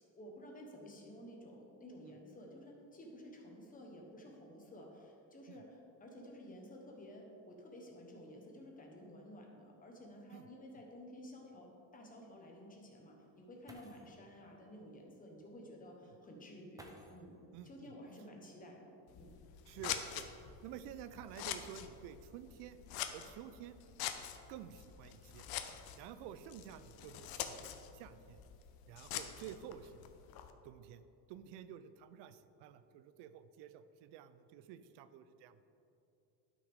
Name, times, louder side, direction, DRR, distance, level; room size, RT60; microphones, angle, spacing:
voice 1, 0.1-17.3 17.6-19.3, equal, 20° left, 0 dB, 1.2 m, -53 dB
sound 1, 13.7-14.2 15.5-15.6 16.7-17.3 19.8-20.6 21.9-22.0 22.8-24.2 24.9-25.3 25.6-26.0, right 1 dB, 10° right, 0.7 m, -59 dB
voice 2, 17.5-17.9 19.7-20.3 20.6-22.8 23.1-23.8 24.5-25.5 25.9-28.4 28.9-30.0 30.6-35.6, right 9 dB, 80° right, 12 dB, 0.5 m, -51 dB
Scissors, 19.1-30.5, left 10 dB, 65° left, 0.7 m, -45 dB
11.5 x 6.1 x 3.6 m, 2.8 s
cardioid pair, 150°, 40 cm